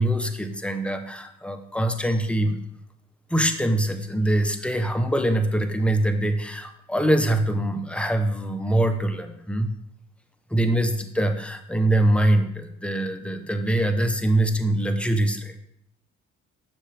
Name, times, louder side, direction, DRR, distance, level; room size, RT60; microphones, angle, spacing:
voice 1, 0.0-2.6 3.3-9.8 10.5-15.6, right 1 dB, 5° left, 6 dB, 0.7 m, -23 dB
7.5 x 5.9 x 3.4 m, 0.75 s
cardioid pair, 90°, 30 cm